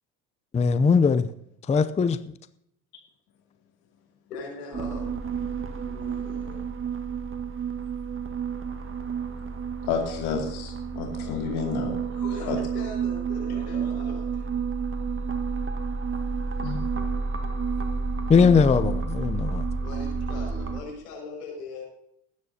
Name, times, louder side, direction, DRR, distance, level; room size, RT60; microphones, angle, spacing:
voice 1, 0.5-1.3 1.7-2.2 18.3-19.7, left 5 dB, 15° left, 13 dB, 0.6 m, -20 dB
voice 2, 4.3-5.1 5.8-6.6 11.1-14.6 19.8-21.8, left 3 dB, 85° left, -1 dB, 5.9 m, -40 dB
sound 1, 4.7-20.8, right 5 dB, 25° right, 1.9 m, -30 dB
voice 3, 9.9-12.0 12.5-12.6 16.6-16.8, left 7 dB, 55° left, 1 dB, 2.6 m, -30 dB
20.0 x 9.5 x 2.8 m, 0.73 s
hypercardioid pair, 70°, 45 cm